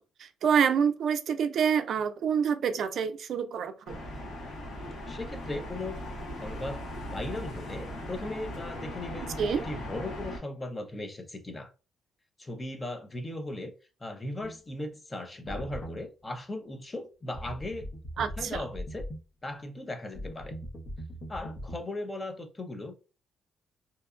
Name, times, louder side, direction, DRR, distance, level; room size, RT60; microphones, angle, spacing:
voice 1, 0.2-4.0 9.4-9.6 18.2-18.6, right 7 dB, 65° right, 0.3 m, -27 dB
sound 1, 3.9-10.4, left 1 dB, 80° left, 1.0 m, -39 dB
voice 2, 4.8-6.0 6.4-6.8 7.1-11.7 12.4-13.7 14.0-17.9 18.2-19.1 19.4-20.5 21.3-23.0, left 2 dB, 25° left, 0.6 m, -38 dB
sound 2, 14.4-14.6 15.5-16.0 17.3-19.2 20.1-21.8, equal, 50° left, 0.8 m, -40 dB
2.7 x 2.2 x 2.4 m
cardioid pair, 90°, 0 cm